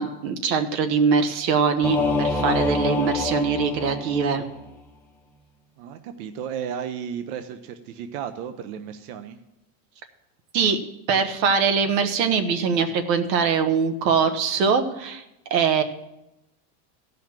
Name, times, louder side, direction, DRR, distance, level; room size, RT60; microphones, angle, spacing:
voice 1, 0.0-4.4 10.5-10.8 11.1-15.2 15.5-15.8, right 6 dB, 90° right, 8 dB, 1.4 m, -22 dB
Singing / Musical instrument, 1.8-4.7, left 3 dB, 5° left, 0.7 m, -26 dB
voice 2, 5.8-9.4, right 8 dB, 65° right, 9 dB, 0.9 m, -34 dB
15.0 x 5.7 x 7.4 m, 0.91 s
supercardioid pair, 150°, 49 cm